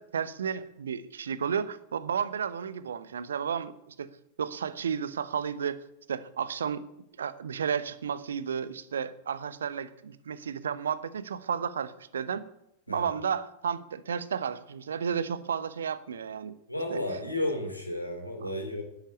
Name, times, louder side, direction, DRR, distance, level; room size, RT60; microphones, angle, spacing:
voice 1, 0.0-4.1 4.4-5.8 6.1-6.8 7.2-12.4 12.9-16.5 16.9-17.0, right 7 dB, 65° right, 15 dB, 0.9 m, -32 dB
voice 2, 16.7-18.8, left 1 dB, 85° left, 4 dB, 3.3 m, -32 dB
10.5 x 10.5 x 8.4 m, 0.82 s
figure-of-eight pair, 90°, 0 cm